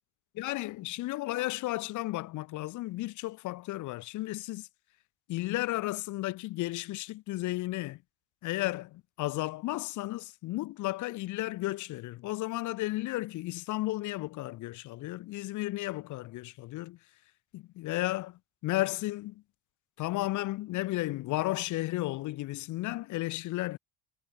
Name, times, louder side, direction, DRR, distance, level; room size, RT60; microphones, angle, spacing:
voice 1, 0.4-4.7 5.3-8.0 8.4-17.0 17.5-19.4 20.0-23.8, left 18 dB, 45° left, 1.7 m, -33 dB
cardioid pair, 175°, 42 cm